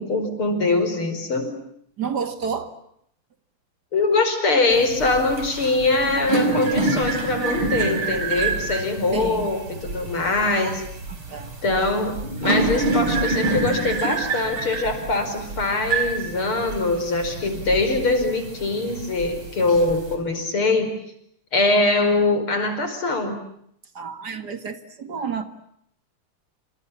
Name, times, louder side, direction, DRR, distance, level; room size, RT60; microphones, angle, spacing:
voice 1, 0.0-1.5 3.9-10.8 11.6-20.9 21.5-23.4, left 3 dB, 75° left, 8 dB, 5.9 m, -22 dB
voice 2, 2.0-2.7 9.1-9.5 10.6-10.8 11.3-11.5 23.9-25.5, right 6 dB, 50° right, 10 dB, 2.4 m, -30 dB
sound 1, 4.7-20.2, right 3 dB, 70° right, 5.8 m, -27 dB
29.0 x 26.5 x 7.4 m, 0.71 s
omnidirectional pair, 2.4 m